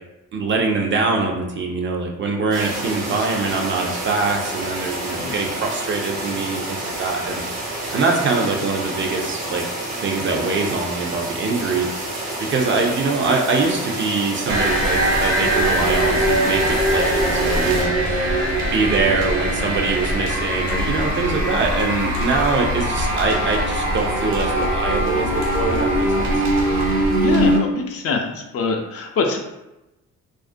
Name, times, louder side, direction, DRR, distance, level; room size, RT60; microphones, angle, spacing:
voice 1, 0.3-7.4 7.9-9.6 10.0-11.9 12.5-18.3 18.7-26.5, right 3 dB, 40° right, 1 dB, 0.4 m, -23 dB
sound 1, 2.5-17.8, right 1 dB, 90° right, 0.8 m, -29 dB
sound 2, 14.5-27.6, right 1 dB, 60° right, 0.9 m, -21 dB
voice 2, 27.2-29.4, left 4 dB, 50° left, 2 dB, 0.4 m, -24 dB
2.4 x 2.1 x 2.5 m, 0.95 s
cardioid pair, 90°, 30 cm